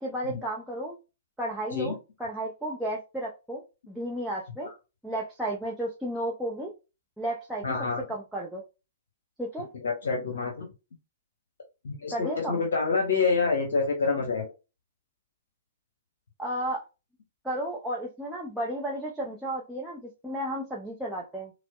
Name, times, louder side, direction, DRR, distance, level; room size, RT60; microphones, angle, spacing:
voice 1, 0.0-1.0 1.4-4.7 5.0-6.7 7.2-7.7 8.1-8.6 9.4-9.7 12.1-12.6 16.4-16.8 17.4-21.5, right 1 dB, 5° right, -5 dB, 0.6 m, -33 dB
voice 2, 7.6-8.0 9.7-10.7 11.8-14.5, left 4 dB, 60° left, 1 dB, 0.9 m, -27 dB
4.2 x 2.1 x 2.3 m, 0.28 s
figure-of-eight pair, 115°, 0 cm